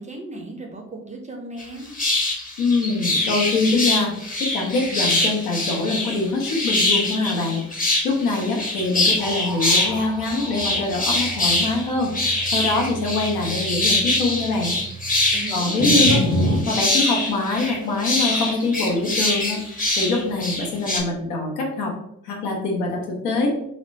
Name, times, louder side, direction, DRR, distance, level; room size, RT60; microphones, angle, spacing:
voice 1, 0.0-1.9 15.3-16.1, right 2 dB, 15° right, 1 dB, 0.5 m, -36 dB
sound 1, 1.6-1.7 1.9-9.9 10.2-21.0, left 2 dB, 20° left, 0.7 m, -23 dB
voice 2, 2.6-4.1 4.4-7.6 8.0-12.1 12.5-14.8 15.5-16.2 16.7-21.9 22.2-23.5, left 3 dB, 70° left, 0 dB, 0.7 m, -24 dB
sound 2, 9.2-15.3 15.8-16.6, equal, 45° left, 1.3 m, -29 dB
2.8 x 2.0 x 2.6 m, 0.76 s
figure-of-eight pair, 40°, 43 cm